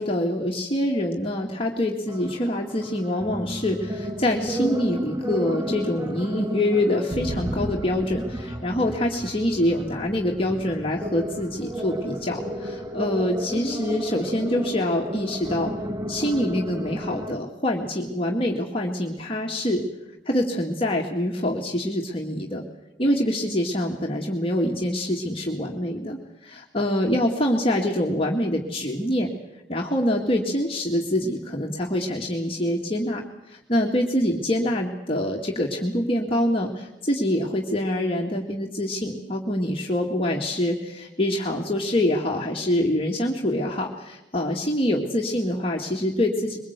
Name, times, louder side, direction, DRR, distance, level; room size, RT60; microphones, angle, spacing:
voice 1, 0.0-15.7 16.1-19.9 20.3-22.6 23.0-29.3 29.7-33.2 33.5-46.6, left 1 dB, 30° left, -1 dB, 2.1 m, -25 dB
sound 1, 2.1-17.4, right 1 dB, 20° right, 1.3 m, -33 dB
23.0 x 22.0 x 8.2 m, 0.87 s
head